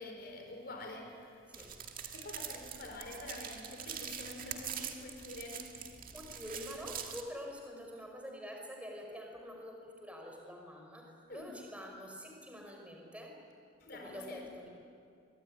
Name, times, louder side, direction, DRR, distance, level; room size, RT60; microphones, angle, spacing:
voice 1, 0.0-1.7 2.1-5.7 11.3-11.6 13.8-14.4, left 2 dB, 55° left, 2 dB, 5.1 m, -47 dB
sound 1, 1.5-7.2, right 8 dB, 45° right, 2.1 m, -44 dB
voice 2, 6.1-13.4 13.9-14.7, equal, 5° right, 1 dB, 4.9 m, -46 dB
25.0 x 23.0 x 9.8 m, 2.4 s
head